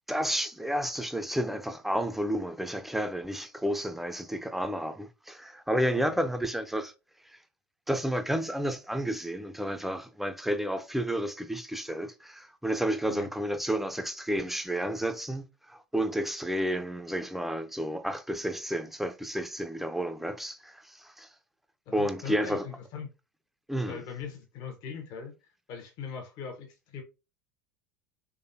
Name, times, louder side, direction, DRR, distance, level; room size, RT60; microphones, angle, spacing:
voice 1, 0.1-6.9 7.2-7.4 7.9-21.3 21.9-22.7 23.7-24.0, equal, ahead, 0.6 m, -31 dB
voice 2, 21.9-23.1 23.9-25.3 25.7-27.0, left 6 dB, 50° left, 1.1 m, -40 dB
3.7 x 3.3 x 2.7 m
figure-of-eight pair, 75°, 8 cm